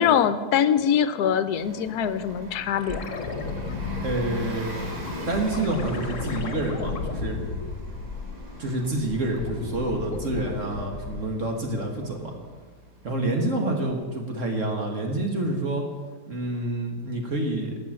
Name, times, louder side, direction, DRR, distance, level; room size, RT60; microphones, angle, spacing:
voice 1, 0.0-3.0, left 8 dB, 75° left, 13 dB, 1.2 m, -23 dB
Bus, 1.4-13.7, equal, 85° right, 2.8 m, -41 dB
sound 1, 2.8-8.6 9.0-11.5 13.9-14.0, left 4 dB, 50° left, 1.4 m, -34 dB
voice 2, 4.0-4.7 5.3-7.4 8.6-12.3 13.0-15.9 16.3-17.8, right 2 dB, 50° right, 2 dB, 1.8 m, -28 dB
12.5 x 6.2 x 8.8 m, 1.5 s
omnidirectional pair, 1.8 m